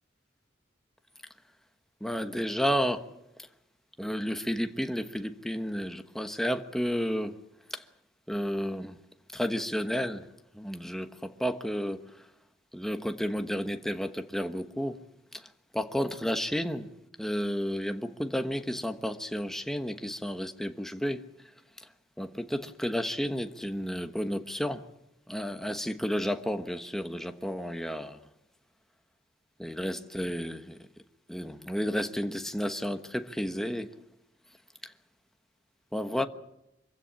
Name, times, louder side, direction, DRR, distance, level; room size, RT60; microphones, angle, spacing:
voice 1, 2.0-3.1 4.0-7.4 7.7-7.8 8.3-9.0 9.3-10.3 10.5-12.1 12.7-15.0 15.3-15.5 15.7-16.9 17.2-21.2 21.8-21.9 22.2-24.9 25.3-28.2 29.6-30.8 31.3-33.9 34.8-34.9 35.9-36.3, equal, ahead, 1.2 m, -32 dB
25.0 x 16.0 x 8.8 m
head